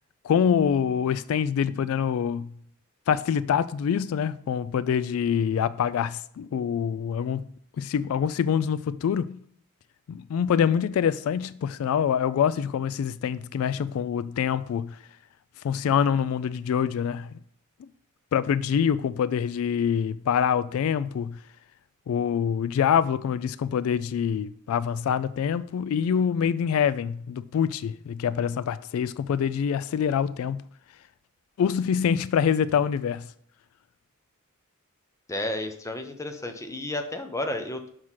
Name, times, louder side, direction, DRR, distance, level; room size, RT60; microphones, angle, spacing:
voice 1, 0.2-2.5 3.1-7.4 7.8-9.4 10.1-15.0 15.6-17.3 18.3-21.4 22.1-30.6 31.6-33.3, left 7 dB, 80° left, 0.3 m, -25 dB
voice 2, 35.3-37.9, left 1 dB, 15° left, 0.8 m, -32 dB
6.3 x 4.7 x 5.7 m
head